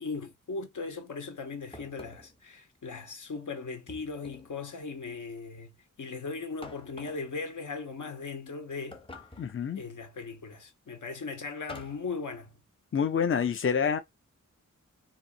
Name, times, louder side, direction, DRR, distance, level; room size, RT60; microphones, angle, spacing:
voice 1, 0.0-9.0 9.4-9.5 9.7-12.6, left 4 dB, 80° left, 1.2 m, -38 dB
sound 1, 1.7-2.4 3.9-4.6 6.6-7.3 8.9-9.6 11.7-12.1, left 2 dB, 15° left, 0.9 m, -47 dB
voice 2, 9.4-9.8 12.9-14.0, left 7 dB, 45° left, 0.5 m, -27 dB
4.0 x 2.6 x 2.6 m
wide cardioid pair, 130°, 30 cm